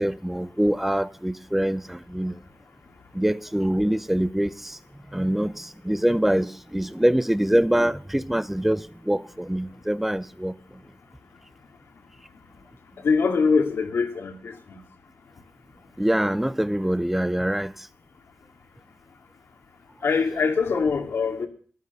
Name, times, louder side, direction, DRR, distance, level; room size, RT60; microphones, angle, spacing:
voice 1, 0.0-2.4 3.1-4.8 5.1-10.5 16.0-17.9, right 1 dB, 5° right, 0.6 m, -24 dB
voice 2, 13.0-14.8 20.0-21.5, left 5 dB, 85° left, 2.4 m, -23 dB
13.0 x 12.0 x 5.6 m
wide cardioid pair, 125°, 4 cm